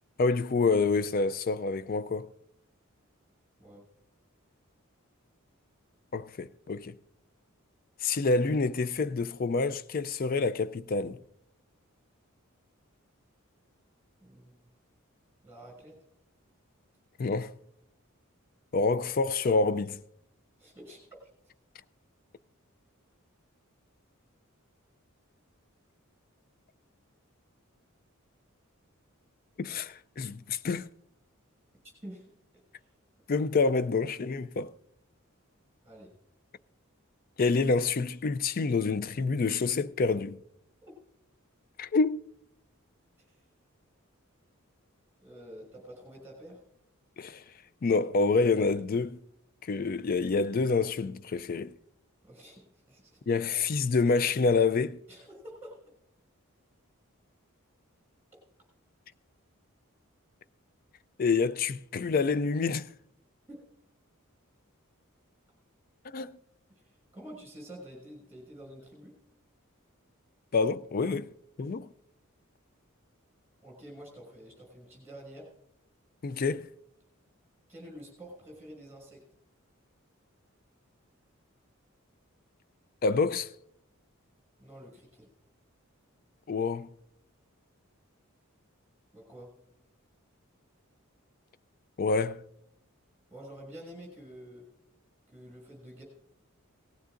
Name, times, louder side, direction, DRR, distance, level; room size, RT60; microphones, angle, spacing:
voice 1, 0.2-2.3 6.1-7.0 8.0-11.2 17.2-17.5 18.7-20.0 29.6-30.9 33.3-34.7 37.4-40.4 41.8-42.2 47.2-47.4 47.8-49.2 49.6-51.7 53.3-55.0 61.2-62.9 66.1-66.4 70.5-71.3 71.6-71.9 76.2-76.7 83.0-83.5 86.5-86.9 92.0-92.4, left 4 dB, 40° left, 0.4 m, -27 dB
voice 2, 14.2-14.5 15.4-16.0 20.6-21.0 32.0-32.3 32.7-32.9 35.8-36.1 43.3-43.4 45.2-46.6 52.2-53.2 55.1-55.8 63.5-63.6 66.8-69.1 73.6-75.5 77.7-79.2 84.6-85.3 89.1-89.5 93.3-94.6 95.3-96.0, equal, 10° right, 5.8 m, -48 dB
18.5 x 15.5 x 2.5 m
head